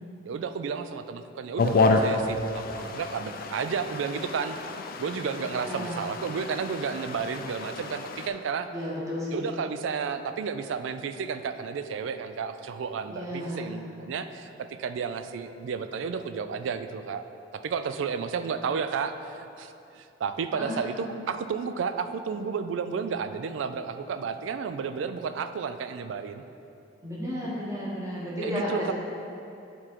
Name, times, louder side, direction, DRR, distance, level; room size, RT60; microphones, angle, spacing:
voice 1, 0.3-4.6 5.0-8.7 9.3-17.2 17.5-26.4 28.4-28.9, right 6 dB, 80° right, 9 dB, 0.3 m, -32 dB
sound 1, 1.6-8.3, left 3 dB, 50° left, 0.4 m, -29 dB
voice 2, 5.5-6.0 8.7-9.6 13.1-13.8 20.5-20.8 27.0-28.9, left 1 dB, 20° right, -6 dB, 1.3 m, -33 dB
8.7 x 3.7 x 4.5 m, 2.7 s
head